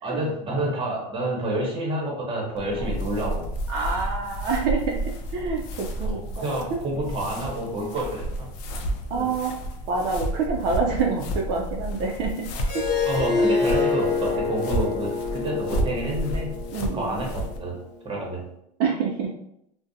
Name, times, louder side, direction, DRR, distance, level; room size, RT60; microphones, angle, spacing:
voice 1, 0.0-3.5 6.0-8.5 9.1-9.3 13.0-16.6 16.9-17.8 18.0-18.4, right 1 dB, 25° right, -1 dB, 0.9 m, -29 dB
sound 1, 2.6-17.6, right 1 dB, 65° left, 0.5 m, -32 dB
voice 2, 3.7-5.0 5.3-6.1 6.4-6.8 9.1-9.6 9.9-12.5 12.7-12.8 16.7-17.1 18.8-19.3, right 4 dB, 55° right, -1 dB, 0.4 m, -27 dB
Harp, 12.6-17.8, left 4 dB, 35° left, 0.9 m, -27 dB
2.5 x 2.1 x 2.6 m, 0.77 s
supercardioid pair, 120°, 21 cm